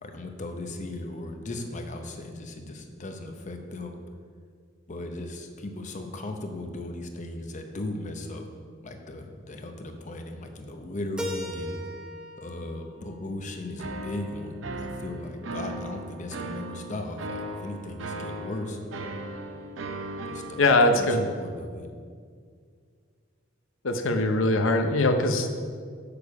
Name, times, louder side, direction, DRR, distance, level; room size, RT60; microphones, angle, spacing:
voice 1, 0.0-3.9 4.9-8.5 8.8-11.8 12.4-18.8 20.2-21.9, left 1 dB, 40° left, 5 dB, 0.7 m, -37 dB
Keyboard (musical), 11.2-14.1, left 1 dB, 5° right, 0.6 m, -38 dB
sound 1, 13.8-20.6, right 1 dB, 70° right, 0.6 m, -37 dB
voice 2, 20.6-21.3 23.8-25.5, left 2 dB, 75° left, 6 dB, 0.7 m, -22 dB
7.0 x 6.8 x 4.8 m, 2.1 s
head